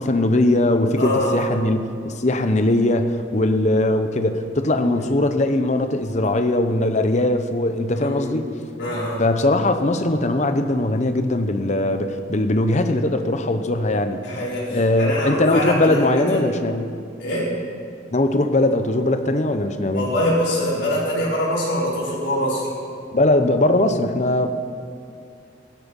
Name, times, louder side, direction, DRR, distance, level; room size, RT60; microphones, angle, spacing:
voice 1, 0.0-8.5 9.2-14.2 14.7-16.9 18.1-20.1 23.1-24.5, left 1 dB, 40° left, 8 dB, 0.8 m, -20 dB
voice 2, 1.0-1.4 4.8-5.0 7.9-8.4 8.7-9.2 14.2-16.4 17.2-17.5 19.9-22.7, equal, 65° left, -6 dB, 4.7 m, -24 dB
15.5 x 12.0 x 5.4 m, 2.3 s
head